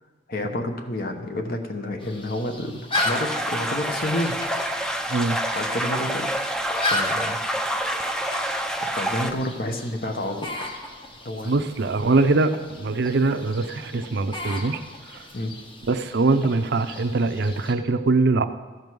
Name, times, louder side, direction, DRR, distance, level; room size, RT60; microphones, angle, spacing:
voice 1, 0.3-4.4 5.5-6.3 6.9-7.4 8.8-10.7 11.2-11.5 15.3-15.5, left 1 dB, 50° left, 5 dB, 1.1 m, -29 dB
sound 1, 2.0-17.7, left 2 dB, 25° left, 1.0 m, -35 dB
sound 2, 2.9-9.3, equal, 5° left, 0.5 m, -27 dB
voice 2, 11.4-14.8 15.1-15.2 15.9-18.4, right 3 dB, 60° right, 10 dB, 0.6 m, -22 dB
14.0 x 5.3 x 6.2 m, 1.4 s
head